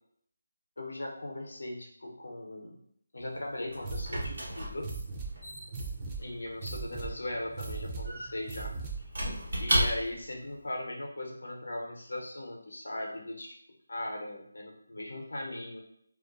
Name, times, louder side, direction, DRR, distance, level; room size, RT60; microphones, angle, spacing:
voice 1, 0.8-2.8 3.1-4.9 6.2-8.7 9.6-13.5 13.9-15.8, left 1 dB, 80° left, 0 dB, 0.6 m, -38 dB
Squeak / Wood, 3.2-10.4, right 1 dB, 75° right, 1.0 m, -35 dB
sound 1, 3.8-9.2, right 4 dB, 20° right, 0.4 m, -40 dB
2.3 x 2.2 x 2.4 m, 0.70 s
figure-of-eight pair, 165°, 0 cm